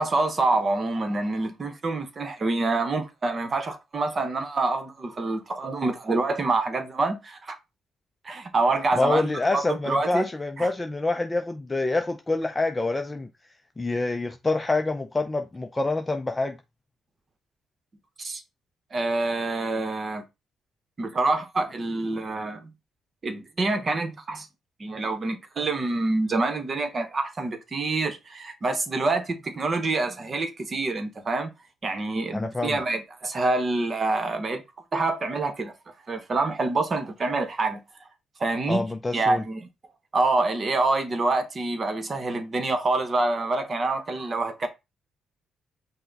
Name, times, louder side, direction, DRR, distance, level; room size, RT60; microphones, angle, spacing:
voice 1, 0.0-7.6 8.2-10.3 10.6-10.7 18.2-18.4 18.9-20.2 21.0-22.7 23.2-24.5 24.8-31.5 31.8-34.6 34.9-35.7 36.1-37.8 38.4-38.8 39.1-39.7 40.1-44.7, right 3 dB, 40° right, 0.9 m, -26 dB
voice 2, 8.9-13.3 13.8-16.6 32.3-32.8 38.7-39.4, left 2 dB, 20° left, 0.4 m, -26 dB
5.6 x 2.2 x 3.9 m
cardioid pair, 90°, 0 cm